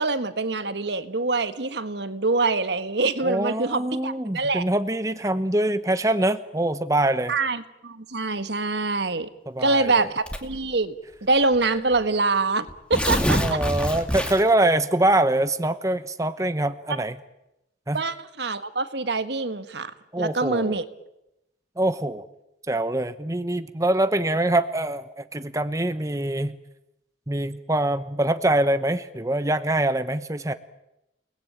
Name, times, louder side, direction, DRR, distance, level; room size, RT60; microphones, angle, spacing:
voice 1, 0.0-4.6 7.3-9.3 9.6-10.9 11.2-13.6 17.9-20.8, right 3 dB, 65° right, 11 dB, 1.6 m, -25 dB
voice 2, 3.2-7.3 9.5-10.1 13.4-17.2 17.9-18.0 20.1-20.8 21.8-22.2 22.7-26.6 27.3-30.5, right 1 dB, 15° right, 11 dB, 0.9 m, -24 dB
Tearing, 10.3-10.7 11.5-11.6 11.9-12.0 12.7-14.6, equal, 5° left, 2.3 m, -25 dB
29.5 x 20.0 x 9.0 m, 0.89 s
head